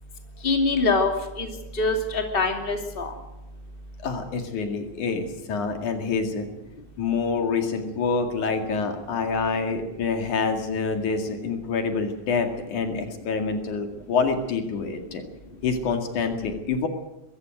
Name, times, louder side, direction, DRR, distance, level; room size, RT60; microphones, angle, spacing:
voice 1, 0.4-1.1 1.4-3.1, left 3 dB, 20° left, 4 dB, 2.7 m, -24 dB
voice 2, 4.0-6.5 7.0-15.2 15.6-16.9, left 4 dB, 80° left, 5 dB, 3.7 m, -27 dB
23.0 x 14.5 x 9.3 m, 0.94 s
omnidirectional pair, 3.4 m